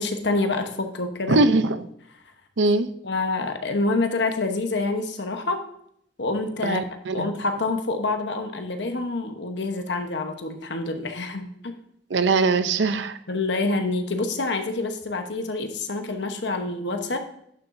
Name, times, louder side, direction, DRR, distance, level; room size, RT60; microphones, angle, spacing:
voice 1, 0.0-1.4 3.0-5.6 6.2-6.9 7.1-11.7 13.3-17.2, left 3 dB, 70° left, 6 dB, 1.1 m, -27 dB
voice 2, 1.3-1.9 2.6-2.9 6.6-7.3 12.1-13.2, right 3 dB, 85° right, 12 dB, 0.6 m, -21 dB
11.5 x 6.8 x 2.7 m, 0.72 s
head